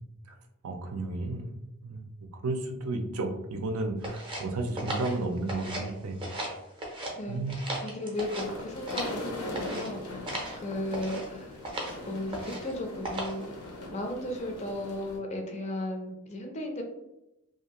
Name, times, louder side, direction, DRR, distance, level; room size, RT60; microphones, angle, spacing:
voice 1, 0.6-1.5 1.8-2.0 2.4-6.2 7.3-7.6, right 2 dB, 70° right, 4 dB, 0.5 m, -32 dB
sound 1, 4.0-5.9 6.2-7.1 7.5-9.2 9.5-9.9 10.3-10.6 10.9-11.3 11.6-12.0 12.3-12.7 13.0-13.5, right 1 dB, 25° right, 0.5 m, -36 dB
voice 2, 7.2-11.6 12.1-13.5 13.9-16.8, left 1 dB, 30° left, 3 dB, 0.4 m, -35 dB
sound 2, 8.1-15.2, left 1 dB, 90° left, 0.7 m, -41 dB
2.6 x 2.4 x 2.9 m, 0.91 s
head